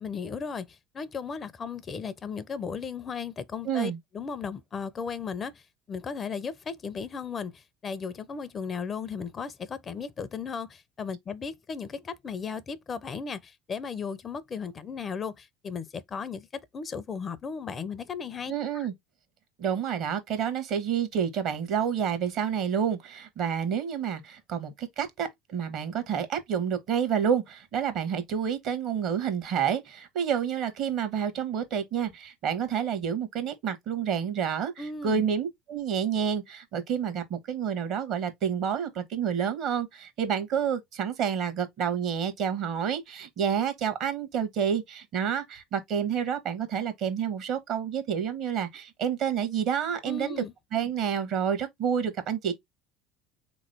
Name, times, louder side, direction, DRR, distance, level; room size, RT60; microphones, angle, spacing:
voice 1, 0.0-18.9 34.8-35.2 50.0-50.5, left 5 dB, 35° left, 0.5 m, -36 dB
voice 2, 3.6-4.0 18.5-18.9 19.6-50.3 50.7-52.5, right 8 dB, 55° right, 1.1 m, -29 dB
3.7 x 3.0 x 3.3 m
hypercardioid pair, 70°, 0 cm